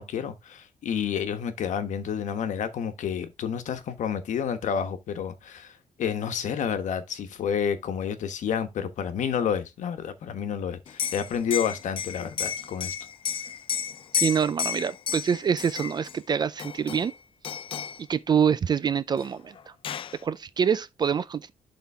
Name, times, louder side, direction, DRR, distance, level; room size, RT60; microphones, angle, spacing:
voice 1, 0.0-12.9, left 7 dB, 65° left, 1.2 m, -30 dB
Liquid, 10.9-16.2 16.6-17.2 17.4-18.0 19.2-19.3 19.6-20.2, left 8 dB, 40° left, 0.4 m, -32 dB
voice 2, 14.1-17.1 18.1-19.5 20.2-21.5, right 7 dB, 35° right, 0.4 m, -25 dB
11.5 x 3.8 x 3.5 m
wide cardioid pair, 170°, 13 cm